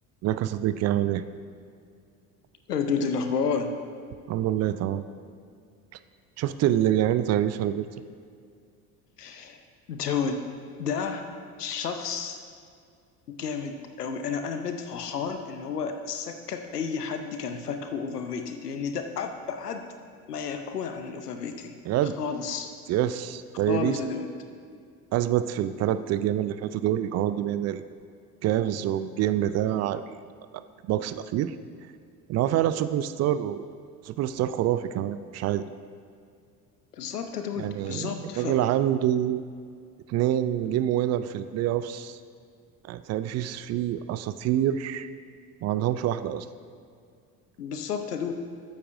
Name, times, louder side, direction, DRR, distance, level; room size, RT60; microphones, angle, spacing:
voice 1, 0.2-1.2 4.3-5.0 6.4-7.9 21.9-22.1 22.9-24.0 25.1-27.8 28.4-30.0 30.8-31.5 32.3-33.6 34.0-35.7 37.6-39.4 40.1-42.2 42.9-45.1 45.6-46.5, right 12 dB, 35° right, 12 dB, 0.4 m, -26 dB
voice 2, 2.7-3.7 9.2-9.6 9.9-10.4 10.8-11.3 11.6-12.4 13.3-19.9 20.3-21.8 22.2-22.7 23.7-24.3 36.9-38.6 47.6-48.3, left 6 dB, 85° left, 7 dB, 0.7 m, -31 dB
13.0 x 8.6 x 2.6 m, 2.2 s
figure-of-eight pair, 60°, 46 cm